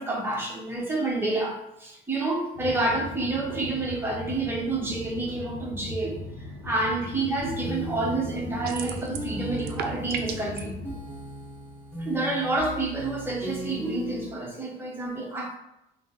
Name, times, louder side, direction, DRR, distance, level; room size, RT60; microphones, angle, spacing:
voice 1, 0.0-6.2 6.6-10.8 12.0-15.6, right 2 dB, 15° right, -2 dB, 1.0 m, -29 dB
sound 1, 2.5-11.0, left 1 dB, 70° left, 0.7 m, -39 dB
sound 2, 7.4-14.3, equal, 10° left, 1.3 m, -36 dB
sound 3, 8.6-9.3 9.6-10.6, right 8 dB, 70° right, 0.4 m, -34 dB
3.8 x 2.1 x 3.6 m, 0.84 s
cardioid pair, 110°, 17 cm